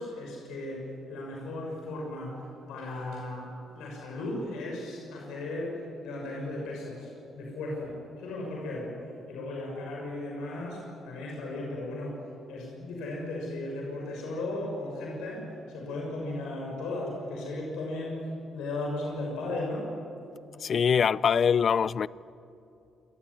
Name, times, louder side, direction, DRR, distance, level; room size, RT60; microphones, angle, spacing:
voice 1, 0.0-2.4 2.7-9.0 9.3-12.2 12.5-18.3 18.5-19.9, left 2 dB, 90° left, 6.2 m, -36 dB
voice 2, 20.6-22.1, left 7 dB, 50° left, 0.5 m, -23 dB
27.5 x 20.0 x 9.8 m
cardioid pair, 90°, 0 cm